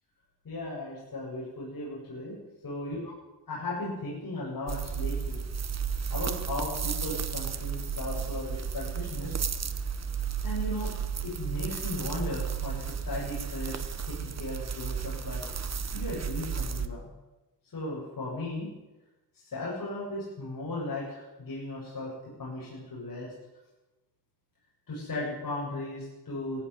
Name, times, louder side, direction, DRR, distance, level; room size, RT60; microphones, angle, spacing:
voice 1, 0.4-2.4 2.6-3.1 3.5-5.4 6.1-9.4 10.4-10.9 11.2-15.4 15.9-17.0 17.7-18.7 19.3-22.1 22.4-23.3 24.9-26.6, left 2 dB, 50° left, -5 dB, 8.0 m, -36 dB
sound 1, 4.7-16.9, right 7 dB, 40° right, 1.2 m, -33 dB
18.5 x 16.5 x 9.8 m, 1.0 s
wide cardioid pair, 140°, 42 cm